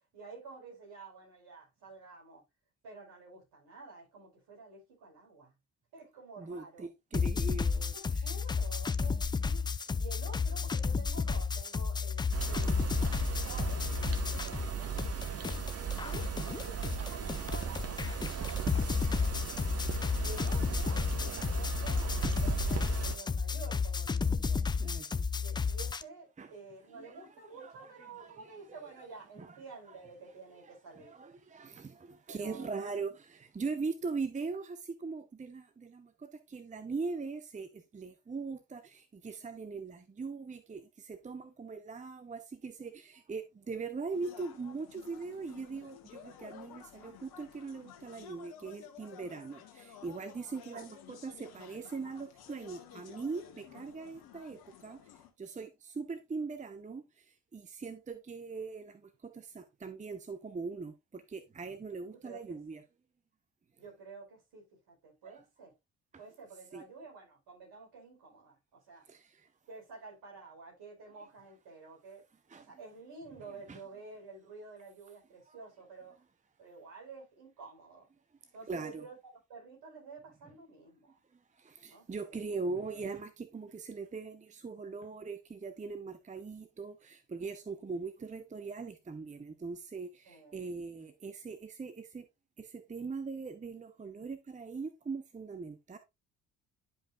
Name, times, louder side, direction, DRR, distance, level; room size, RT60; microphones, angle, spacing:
voice 1, 0.1-2.4 2.8-5.5 5.9-6.9 7.9-12.2 12.5-13.2 13.4-14.9 15.4-16.3 16.6-19.8 20.2-24.6 25.4-31.1 32.3-32.9 50.7-50.8 62.2-62.8 63.8-65.7 66.2-69.0 69.7-72.2 72.7-76.1 76.6-78.1 78.5-81.2 81.9-82.4 90.3-90.6, right 3 dB, 60° right, 4.6 m, -50 dB
voice 2, 6.4-8.3 15.3-15.8 16.5-16.6 24.8-25.1 26.4-26.5 26.9-28.8 29.4-29.6 30.9-55.0 55.4-62.8 65.2-65.4 66.7-66.8 69.1-69.5 72.5-72.7 73.7-73.8 75.5-75.6 78.7-79.0 81.6-92.3 92.6-96.0, right 4 dB, 15° right, 0.8 m, -41 dB
sound 1, 7.1-14.7 15.0-26.0, left 5 dB, 10° left, 0.4 m, -32 dB
sound 2, 12.3-23.2, right 7 dB, 35° right, 1.6 m, -37 dB
sound 3, 44.1-55.3, left 9 dB, 60° left, 1.7 m, -53 dB
11.0 x 5.2 x 2.5 m
figure-of-eight pair, 45°, 43 cm